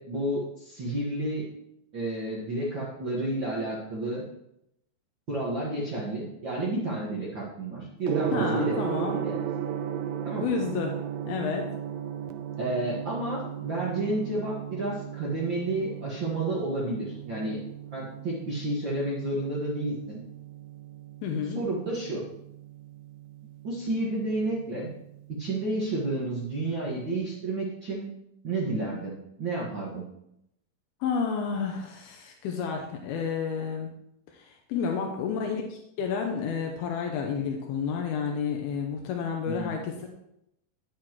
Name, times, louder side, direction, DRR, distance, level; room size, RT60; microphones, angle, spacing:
voice 1, 0.1-1.5 1.9-4.3 5.3-9.4 10.2-10.5 12.6-17.6 17.8-20.2 21.4-22.3 23.6-24.9 25.3-28.1 28.4-30.0 34.8-34.9 39.4-39.7, right 2 dB, 50° right, -6 dB, 1.4 m, -31 dB
Gong, 8.0-27.1, right 9 dB, 85° right, 2.1 m, -36 dB
voice 2, 8.3-9.2 10.4-11.0 11.3-11.7 21.2-21.6 31.0-33.9 34.3-39.9, left 6 dB, 85° left, 2 dB, 2.8 m, -30 dB
9.7 x 8.5 x 3.0 m, 0.79 s
omnidirectional pair, 4.4 m